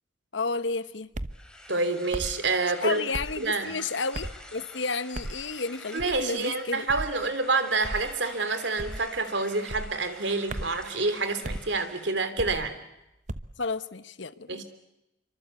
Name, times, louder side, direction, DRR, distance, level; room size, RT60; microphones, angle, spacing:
voice 1, 0.3-1.1 2.8-6.8 13.6-14.6, left 4 dB, 70° left, 14 dB, 1.1 m, -31 dB
sound 1, 1.1-1.4 2.1-2.4 3.1-3.4 4.1-4.4 5.1-5.4 6.0-6.3 6.9-7.2 7.8-8.1 8.8-9.1 9.7-9.9 10.5-10.8 11.4-11.7 12.4-12.7 13.3-13.5, right 1 dB, 40° right, 1.0 m, -35 dB
sound 2, 1.3-12.2, left 1 dB, 5° left, 3.7 m, -48 dB
voice 2, 1.7-3.0 3.4-3.8 5.9-12.8 14.5-14.6, right 3 dB, 65° right, 10 dB, 3.2 m, -28 dB
28.0 x 25.0 x 8.4 m, 0.89 s
head